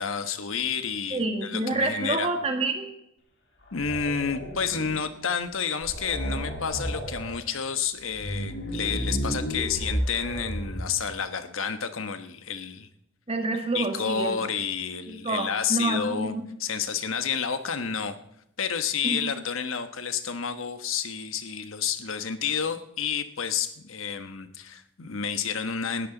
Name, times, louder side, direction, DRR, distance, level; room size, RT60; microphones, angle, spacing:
voice 1, 0.0-2.3 3.7-12.9 13.7-18.2 18.6-26.1, left 6 dB, 85° left, 10 dB, 1.2 m, -30 dB
voice 2, 1.1-2.9 13.3-14.5 15.1-16.4 19.0-19.4, right 2 dB, 30° right, 4 dB, 1.9 m, -28 dB
sound 1, 3.6-5.1 5.5-5.6 5.8-7.4 8.0-11.1, equal, 55° left, 3.0 m, -32 dB
19.0 x 13.0 x 3.9 m, 0.79 s
head